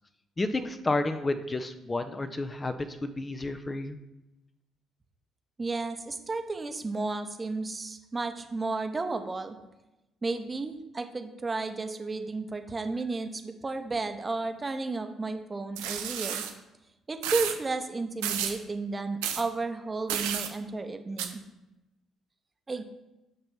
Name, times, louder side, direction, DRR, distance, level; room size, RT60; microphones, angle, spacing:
voice 1, 0.4-4.0, left 2 dB, 25° left, 9 dB, 0.5 m, -31 dB
voice 2, 5.6-9.6 10.2-16.4 17.1-21.4 22.7-22.8, right 3 dB, 30° right, 7 dB, 0.7 m, -33 dB
sound 1, 15.8-16.5 17.2-17.6 18.2-18.6 19.2-19.4 20.1-20.5 21.2-21.3, right 9 dB, 80° right, 0.5 m, -31 dB
6.6 x 3.0 x 5.7 m, 0.96 s
hypercardioid pair, 50°, 0 cm